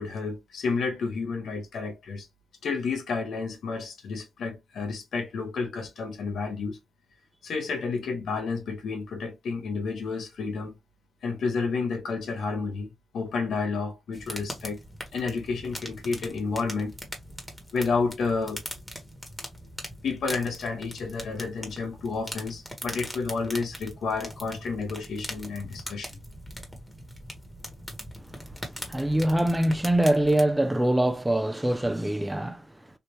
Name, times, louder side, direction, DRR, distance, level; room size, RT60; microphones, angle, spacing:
voice 1, 0.0-2.3 2.6-6.8 7.4-10.7 11.2-14.8 15.1-16.9 17.7-18.6 20.0-26.2, left 4 dB, 80° left, 1.0 m, -30 dB
sound 1, 14.1-30.4, equal, 15° left, 1.3 m, -41 dB
voice 2, 28.9-32.6, right 1 dB, 10° right, 0.5 m, -24 dB
3.3 x 2.6 x 3.0 m
cardioid pair, 75°, 0 cm